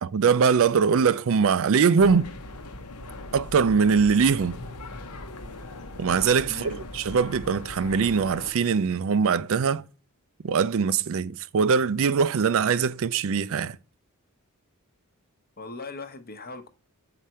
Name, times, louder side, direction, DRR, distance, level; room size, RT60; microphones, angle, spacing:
voice 1, 0.0-2.3 3.3-4.6 6.0-9.8 10.4-13.8, right 6 dB, 65° right, 0.4 m, -22 dB
sound 1, 2.0-8.5, left 2 dB, 85° left, 1.0 m, -40 dB
voice 2, 6.5-6.8 15.6-16.7, left 3 dB, 40° left, 0.9 m, -39 dB
7.9 x 5.0 x 4.3 m
head